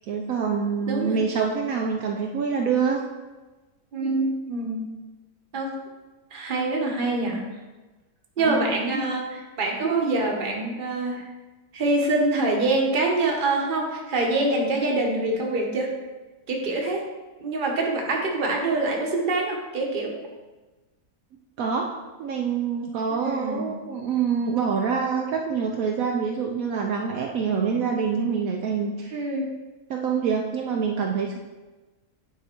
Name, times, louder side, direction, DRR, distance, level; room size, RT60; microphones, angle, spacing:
voice 1, 0.1-3.0 8.4-8.6 21.6-21.9 22.2-29.2 29.9-31.4, right 6 dB, 70° right, 1 dB, 1.0 m, -26 dB
voice 2, 0.9-1.2 3.9-4.9 5.5-5.8 6.3-7.5 8.4-11.3 11.7-16.0 16.5-17.1 17.4-20.2 23.2-23.7 29.1-29.5, right 2 dB, 35° right, 0 dB, 1.1 m, -25 dB
9.3 x 3.9 x 4.4 m, 1.2 s
omnidirectional pair, 1.6 m